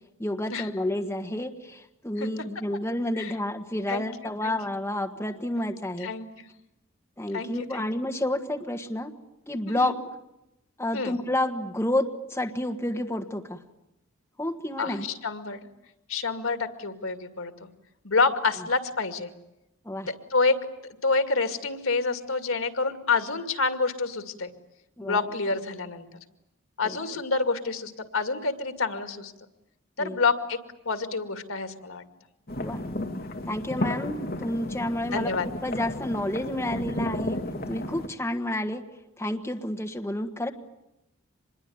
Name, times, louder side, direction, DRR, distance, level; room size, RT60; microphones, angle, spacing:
voice 1, 0.2-6.1 7.2-9.1 9.5-9.9 10.8-13.6 14.4-15.0 19.8-20.1 25.0-25.3 26.8-27.2 30.0-30.2 32.6-32.8 33.4-37.4 37.7-38.8 39.2-40.5, left 1 dB, 10° left, 3 dB, 1.5 m, -30 dB
voice 2, 6.0-6.5 7.3-7.9 9.7-9.9 10.9-11.2 14.8-15.6 16.1-17.5 18.0-19.3 20.1-20.6 21.0-24.5 25.0-26.1 26.8-29.3 30.0-30.6 30.9-32.0 35.1-35.5, left 4 dB, 80° left, 9 dB, 2.3 m, -28 dB
sound 1, 32.5-38.1, left 1 dB, 45° left, 1.7 m, -33 dB
26.0 x 21.5 x 9.4 m, 0.91 s
head